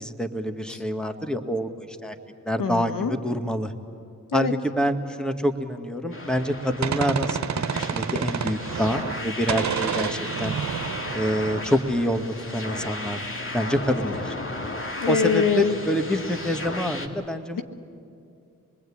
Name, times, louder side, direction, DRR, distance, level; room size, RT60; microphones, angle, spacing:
voice 1, 0.0-2.2 2.5-3.7 4.3-10.6 11.1-12.2 12.5-13.2 13.5-14.4 15.1-17.6, equal, ahead, 7 dB, 1.8 m, -26 dB
voice 2, 2.6-3.1 4.3-4.5 15.0-15.8, left 6 dB, 75° left, 8 dB, 1.3 m, -24 dB
sound 1, 6.1-17.1, left 2 dB, 40° left, 2.3 m, -35 dB
Gunshot gunfire, 6.4-9.2 9.5-12.2, right 7 dB, 55° right, 0.9 m, -29 dB
26.0 x 20.5 x 8.7 m, 2.5 s
supercardioid pair, 50°, 33 cm